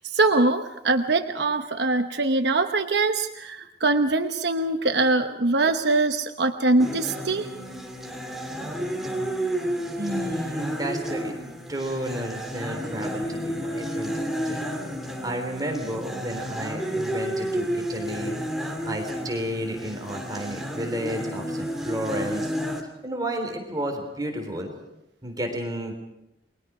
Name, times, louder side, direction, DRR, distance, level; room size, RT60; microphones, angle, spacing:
voice 1, 0.1-7.5, right 3 dB, 65° right, 6 dB, 1.0 m, -23 dB
sound 1, 6.8-22.8, equal, ahead, 2.8 m, -31 dB
voice 2, 10.0-11.4 11.7-14.7 15.2-18.3 18.8-22.5 23.0-24.7 25.2-25.9, right 1 dB, 20° right, 3 dB, 3.4 m, -32 dB
29.5 x 22.0 x 4.9 m, 0.88 s
head